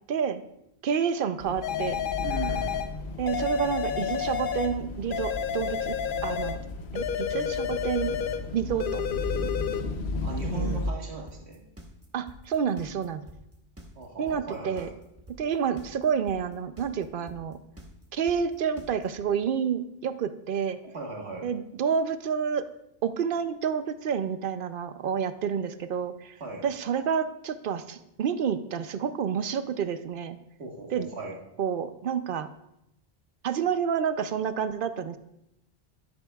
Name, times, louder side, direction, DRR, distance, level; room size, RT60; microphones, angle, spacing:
voice 1, 0.1-0.4 0.8-2.0 3.2-6.0 6.2-6.6 6.9-8.2 8.5-9.0 10.4-10.8 12.1-13.2 14.2-14.9 15.4-17.6 18.1-20.8 21.4-22.7 23.0-26.4 26.6-30.4 30.9-31.1 31.6-32.5 33.4-35.2, right 7 dB, 65° right, 11 dB, 0.7 m, -29 dB
sound 1, 1.4-10.9, left 2 dB, 80° left, 1.0 m, -35 dB
sound 2, 1.6-2.9 3.3-4.8 5.1-6.6 6.9-8.5 8.8-9.8, left 8 dB, 60° left, 0.7 m, -30 dB
voice 2, 2.2-2.8 10.2-11.6 14.0-14.9 20.8-21.5 26.4-26.6 30.6-31.4, right 3 dB, 90° right, 0 dB, 1.7 m, -37 dB
sound 3, 11.3-19.2, equal, 15° right, 1.0 m, -47 dB
10.5 x 10.5 x 2.3 m, 0.83 s
omnidirectional pair, 1.1 m